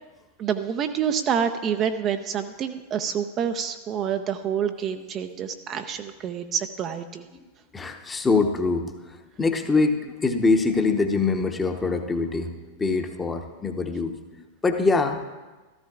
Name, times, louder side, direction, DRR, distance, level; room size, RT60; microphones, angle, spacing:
voice 1, 0.4-7.3, right 8 dB, 30° right, 7 dB, 0.5 m, -27 dB
voice 2, 7.7-15.2, left 3 dB, 15° left, 5 dB, 0.9 m, -24 dB
14.5 x 13.5 x 2.4 m, 1.2 s
figure-of-eight pair, 90°, 0 cm